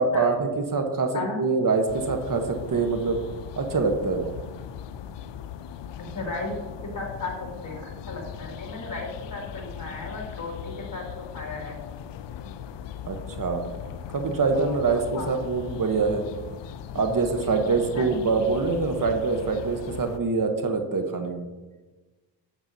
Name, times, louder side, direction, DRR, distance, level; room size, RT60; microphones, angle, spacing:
voice 1, 0.0-3.2 3.6-4.3 13.1-13.7 14.1-16.2 16.9-21.5, right 4 dB, 45° right, 5 dB, 1.1 m, -25 dB
sound 1, 1.9-20.2, left 9 dB, 70° left, 0.6 m, -39 dB
voice 2, 6.0-6.5 6.9-11.0 11.3-11.8 14.5-14.8 15.1-15.4 17.9-18.1, left 3 dB, 40° left, -1 dB, 2.6 m, -35 dB
9.2 x 8.2 x 2.7 m, 1.2 s
cardioid pair, 60°, 45 cm